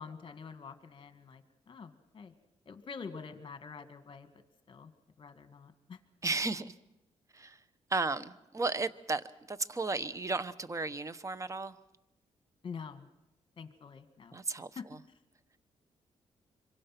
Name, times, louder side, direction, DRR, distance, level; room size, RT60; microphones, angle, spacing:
voice 1, 0.0-2.3 2.7-4.3 4.7-4.9 5.2-6.0 12.6-13.1 13.6-14.4 14.8-15.2, left 5 dB, 45° left, 9 dB, 1.9 m, -46 dB
voice 2, 6.2-6.7 7.3-7.6 7.9-11.7 14.3-14.7, right 3 dB, 25° right, 15 dB, 1.0 m, -34 dB
26.0 x 23.5 x 6.0 m, 0.93 s
cardioid pair, 95°, 12 cm